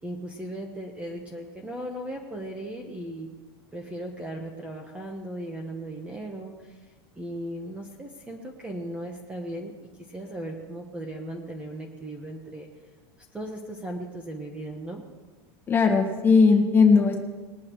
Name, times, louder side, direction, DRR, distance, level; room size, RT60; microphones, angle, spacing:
voice 1, 0.0-3.3 3.7-6.8 7.1-12.7 13.3-15.0, right 1 dB, 10° right, 2 dB, 1.1 m, -37 dB
voice 2, 15.7-17.2, left 4 dB, 15° left, 1 dB, 1.7 m, -18 dB
20.5 x 10.5 x 3.1 m, 1.3 s
supercardioid pair, 150°, 14 cm